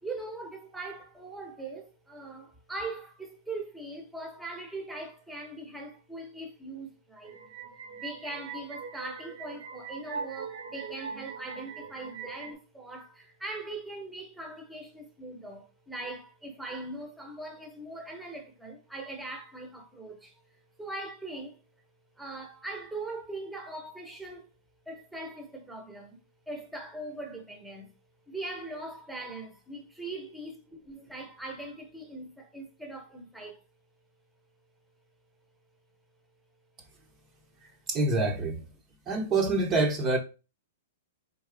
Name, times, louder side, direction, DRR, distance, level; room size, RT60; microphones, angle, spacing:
voice 1, 0.0-7.4 7.9-21.6 22.2-24.5 24.9-26.2 26.5-27.9 28.3-33.6, right 2 dB, 5° right, 1.0 m, -41 dB
sound 1, 7.2-12.5, right 5 dB, 80° right, 1.4 m, -41 dB
voice 2, 37.9-38.6 39.1-40.2, right 2 dB, 25° right, 0.9 m, -26 dB
4.1 x 3.7 x 3.4 m
hypercardioid pair, 145°, 0 cm